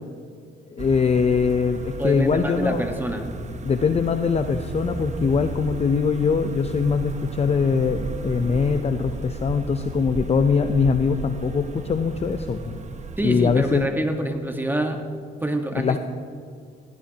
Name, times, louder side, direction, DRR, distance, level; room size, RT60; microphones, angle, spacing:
voice 1, 0.7-2.8 3.6-12.8 13.2-13.9 15.7-16.0, left 5 dB, 30° left, 8 dB, 0.6 m, -22 dB
sound 1, 0.8-13.9, right 4 dB, 35° right, 1.0 m, -35 dB
voice 2, 2.0-3.3 13.2-15.0 15.4-16.0, right 1 dB, 10° right, 4 dB, 1.3 m, -26 dB
17.0 x 16.5 x 2.9 m, 2.1 s
cardioid pair, 90°, 20 cm